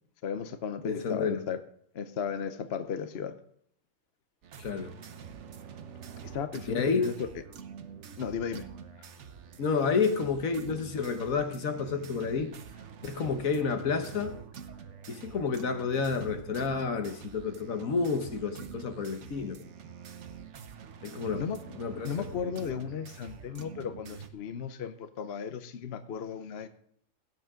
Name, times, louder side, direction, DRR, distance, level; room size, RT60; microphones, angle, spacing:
voice 1, 0.2-1.6 1.9-3.4 6.2-7.3 8.2-8.7 21.3-21.6 22.0-26.7, left 7 dB, 55° left, 10 dB, 0.9 m, -35 dB
voice 2, 0.8-1.4 4.6-4.9 6.7-7.1 9.6-12.5 13.0-14.4 15.1-19.6 21.0-21.4 21.8-22.1 22.4-22.5, left 5 dB, 70° left, 8 dB, 1.6 m, -30 dB
sound 1, 4.4-24.3, right 7 dB, 60° right, 1.1 m, -46 dB
17.5 x 8.1 x 3.7 m, 0.66 s
omnidirectional pair, 1.5 m